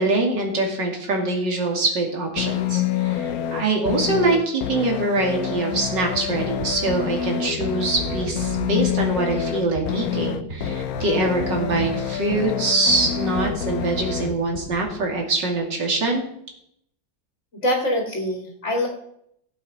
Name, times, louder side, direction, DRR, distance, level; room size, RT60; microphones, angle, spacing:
voice 1, 0.0-16.2, right 2 dB, 65° right, 1 dB, 3.3 m, -24 dB
sound 1, 2.4-14.4, left 10 dB, 65° left, 1.0 m, -27 dB
sound 2, 5.7-15.3, right 3 dB, 45° right, 3.1 m, -37 dB
voice 2, 17.6-18.9, left 1 dB, 35° left, 1 dB, 2.6 m, -24 dB
16.5 x 7.7 x 5.5 m, 0.73 s
omnidirectional pair, 2.1 m